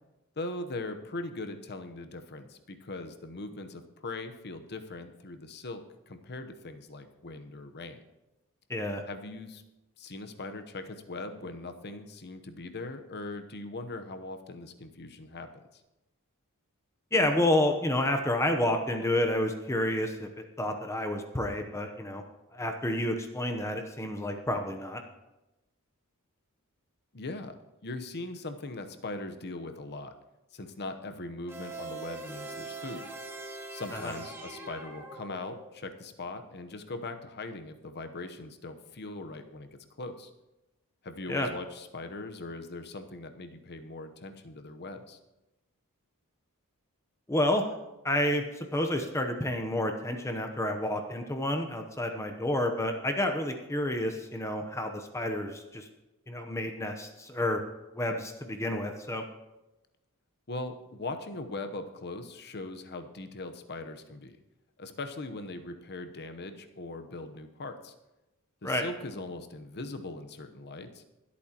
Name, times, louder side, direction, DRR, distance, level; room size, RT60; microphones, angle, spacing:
voice 1, 0.4-8.0 9.1-9.6 10.0-15.5 27.1-27.6 27.8-30.1 30.5-33.1 33.7-40.3 41.0-45.2 60.5-64.4 64.8-67.9 68.6-71.0, left 2 dB, 50° left, 8 dB, 1.0 m, -40 dB
voice 2, 8.7-9.0 17.1-20.3 20.6-22.2 22.5-25.0 33.9-34.1 41.3-41.5 47.3-47.7 48.0-55.8 56.3-57.6 57.9-59.2 68.6-68.8, left 1 dB, 15° left, 5 dB, 0.8 m, -29 dB
sound 1, 31.5-35.8, right 3 dB, 10° right, 1.7 m, -42 dB
25.0 x 8.6 x 3.0 m, 0.99 s
head